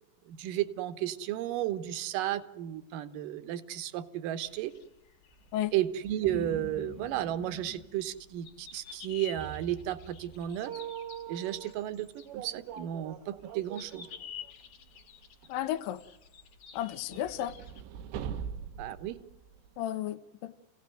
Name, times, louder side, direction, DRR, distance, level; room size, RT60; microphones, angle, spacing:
voice 1, 0.3-4.7 5.7-10.7 11.3-12.1 12.3-14.1 18.8-19.2, right 12 dB, 65° right, 2.3 m, -33 dB
sound 1, 4.5-17.8, left 8 dB, 55° left, 2.0 m, -51 dB
sound 2, 5.5-5.6 6.1-6.2 6.4-6.5 7.8-8.3 8.7-8.8 8.9-9.4 10.5-11.8 12.3-14.5 14.9-15.0 15.4-15.5 16.8-19.8, right 9 dB, 90° right, 3.3 m, -42 dB
sound 3, 6.2-7.9 9.3-10.6, equal, 30° left, 1.4 m, -45 dB
voice 2, 15.5-16.0 16.7-17.5 19.8-20.5, left 12 dB, 75° left, 2.2 m, -33 dB
28.0 x 17.0 x 9.3 m
omnidirectional pair, 5.0 m